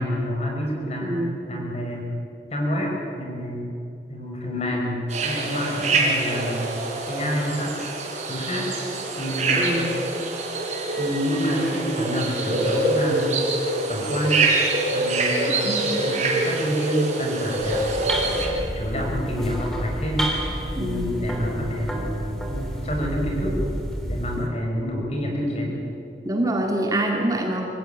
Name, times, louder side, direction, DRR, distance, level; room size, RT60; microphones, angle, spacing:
voice 1, 0.0-1.1 1.5-2.1 2.5-3.7 4.1-6.7 7.1-7.7 8.3-8.7 9.2-9.7 11.0-13.4 13.9-14.5 14.9-17.9 18.7-20.3 20.8-22.1 22.5-23.6 24.1-25.8, equal, 35° left, 0 dB, 5.5 m, -27 dB
voice 2, 1.0-1.4 9.5-10.0 15.6-15.8 20.8-21.2 26.3-27.6, right 1 dB, 20° right, 1 dB, 2.1 m, -25 dB
sound 1, 5.1-18.5, right 2 dB, 40° right, 4.3 m, -25 dB
sound 2, 17.5-24.5, equal, 5° left, 2.9 m, -30 dB
25.0 x 15.5 x 9.2 m, 2.6 s
head